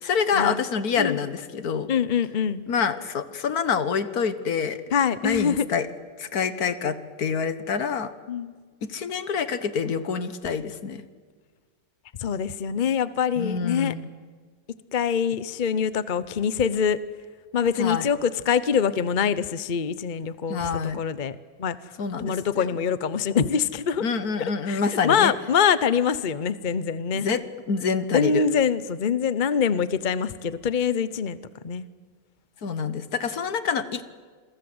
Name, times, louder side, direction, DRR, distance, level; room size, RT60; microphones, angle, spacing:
voice 1, 0.0-1.9 2.7-4.8 5.2-5.9 6.2-8.1 8.8-11.0 13.4-14.1 17.8-18.1 20.5-21.0 22.0-22.7 24.0-25.3 27.1-27.4 27.7-28.4 32.6-34.0, left 6 dB, 60° left, 13 dB, 1.7 m, -26 dB
voice 2, 1.9-2.6 4.9-5.6 8.3-8.5 12.2-13.9 14.9-17.0 17.5-21.9 22.2-24.0 24.7-27.3 28.1-31.4 31.6-31.9, left 7 dB, 45° left, 15 dB, 0.6 m, -24 dB
27.5 x 23.0 x 7.9 m, 1.5 s
omnidirectional pair, 1.9 m